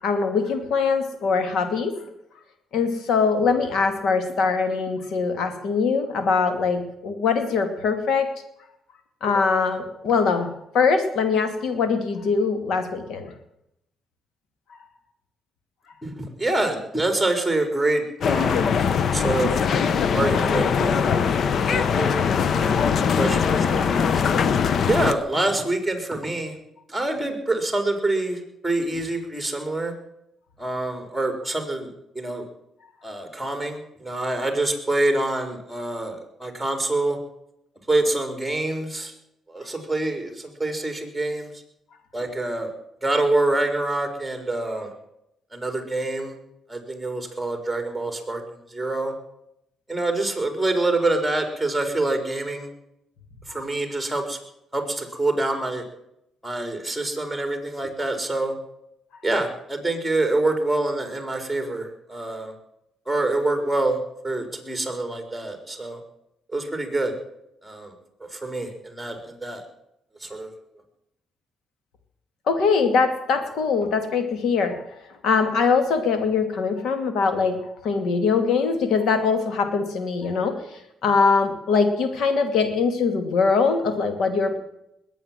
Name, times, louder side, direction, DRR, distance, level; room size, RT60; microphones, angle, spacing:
voice 1, 0.0-1.9 2.7-8.3 9.2-13.3 72.5-74.8 75.2-77.6 77.8-80.5 81.0-84.6, left 5 dB, 75° left, 8 dB, 2.6 m, -22 dB
voice 2, 16.0-18.8 19.1-19.6 20.1-21.2 21.6-24.2 24.9-26.6 26.9-29.9 30.6-32.5 33.0-37.2 37.9-39.1 39.5-41.5 42.1-42.7 43.0-44.9 45.5-46.4 46.7-49.1 49.9-52.7 53.5-54.4 54.7-55.8 56.4-58.5 59.2-62.5 63.1-64.0 64.2-66.0 66.5-67.1 67.6-67.9 68.2-69.6 70.2-70.5, right 2 dB, ahead, 5 dB, 4.5 m, -26 dB
sound 1, 18.2-25.1, left 6 dB, 60° left, 0.9 m, -21 dB
21.0 x 9.1 x 7.7 m, 0.80 s
cardioid pair, 90°, 0 cm